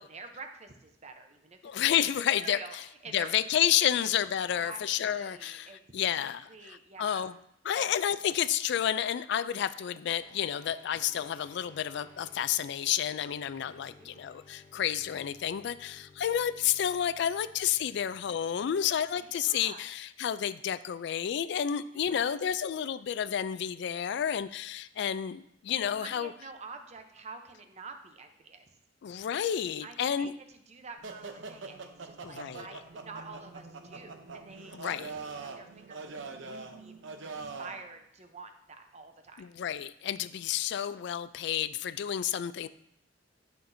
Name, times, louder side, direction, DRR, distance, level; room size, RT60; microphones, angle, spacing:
voice 1, 0.0-2.8 3.0-3.3 3.9-4.1 4.5-7.3 7.7-7.9 12.9-13.0 13.6-14.3 17.9-18.4 19.2-19.8 22.0-22.4 25.7-28.7 29.8-36.9 37.2-39.5, right 4 dB, 35° right, 6 dB, 0.7 m, -48 dB
voice 2, 1.6-2.8 3.1-7.3 7.6-26.3 29.0-30.3 32.2-32.8 34.7-35.1 39.4-42.7, left 9 dB, 65° left, 15 dB, 0.3 m, -30 dB
sound 1, 10.2-19.9, left 3 dB, 25° left, 1.1 m, -58 dB
sound 2, 31.0-37.8, right 4 dB, 90° right, 0.7 m, -43 dB
10.0 x 5.8 x 2.7 m, 0.75 s
head